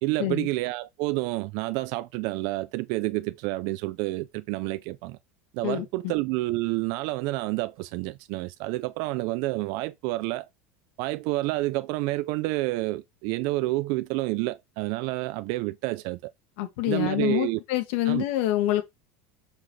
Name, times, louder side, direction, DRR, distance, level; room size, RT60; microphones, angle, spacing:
voice 1, 0.0-5.2 5.5-10.5 11.0-16.2 16.9-17.6 18.1-18.2, right 20 dB, 60° right, 0.5 m, -29 dB
voice 2, 5.6-6.1 16.6-18.8, left 14 dB, 70° left, 2.2 m, -26 dB
6.8 x 5.9 x 3.3 m
supercardioid pair, 135°, 7 cm